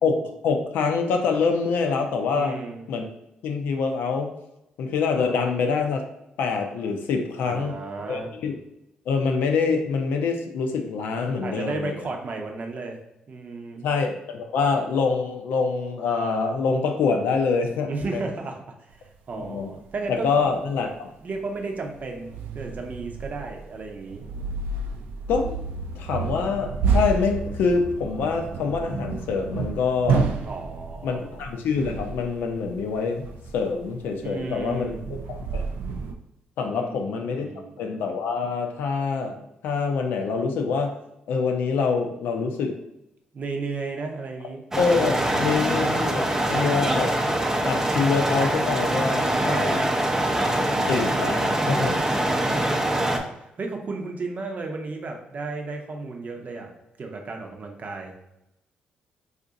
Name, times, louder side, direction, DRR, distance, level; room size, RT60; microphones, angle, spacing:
voice 1, 0.0-2.6 2.9-3.0 3.4-4.3 4.8-6.0 6.4-7.8 8.1-8.6 9.1-11.9 13.8-18.2 19.4-19.7 20.1-21.1 25.3-25.6 26.0-30.3 31.0-33.2 33.5-35.6 36.6-37.4 37.8-39.4 39.6-40.9 41.3-42.8 44.8-47.1 47.6-49.8 50.7-52.0, left 5 dB, 75° left, 4 dB, 0.5 m, -25 dB
voice 2, 2.3-2.9 7.4-8.4 11.4-13.0 13.3-13.9 17.9-20.6 21.2-24.2 30.4-31.3 34.2-35.1 36.7-37.8 43.3-44.6 44.9-45.8 49.3-50.9 51.7-56.7 57.0-58.3, right 3 dB, 50° right, 2 dB, 0.7 m, -34 dB
sound 1, 18.9-19.1 19.4-19.5 20.0-20.1 20.4-20.5 21.6-36.1, right 5 dB, 80° right, 0.4 m, -30 dB
sound 2, 44.7-53.2, right 1 dB, 15° right, 0.5 m, -24 dB
2.6 x 2.4 x 3.8 m, 0.85 s
supercardioid pair, 60°, 3 cm